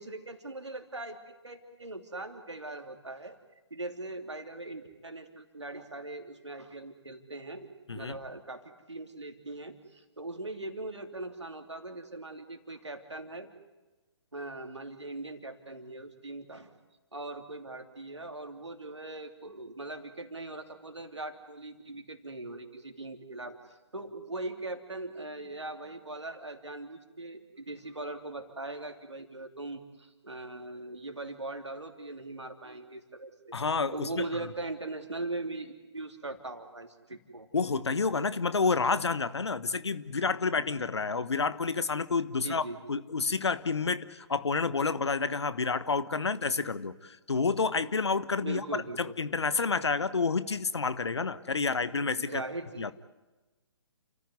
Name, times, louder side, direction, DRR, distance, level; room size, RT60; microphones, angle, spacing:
voice 1, 0.0-3.4 3.7-7.7 7.9-13.5 14.3-16.7 17.1-33.3 33.9-37.5 42.4-42.8 48.4-49.1 52.1-52.9, right 2 dB, 85° right, 5 dB, 3.1 m, -40 dB
voice 2, 33.5-34.2 37.5-52.4 52.8-52.9, left 4 dB, 70° left, 14 dB, 1.2 m, -29 dB
29.5 x 14.5 x 9.5 m, 1.2 s
figure-of-eight pair, 135°, 14 cm